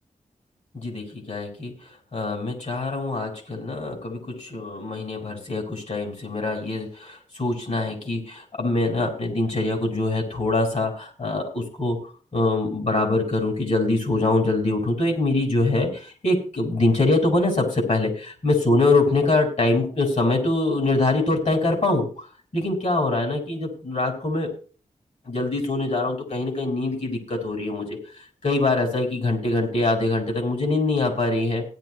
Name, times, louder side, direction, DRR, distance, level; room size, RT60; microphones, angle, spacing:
voice 1, 0.7-1.7 2.1-12.0 12.3-22.2 22.5-24.5 25.3-28.0 28.4-31.6, left 2 dB, 55° left, 2 dB, 4.9 m, -24 dB
16.5 x 11.0 x 3.0 m, 0.38 s
wide cardioid pair, 100°, 14 cm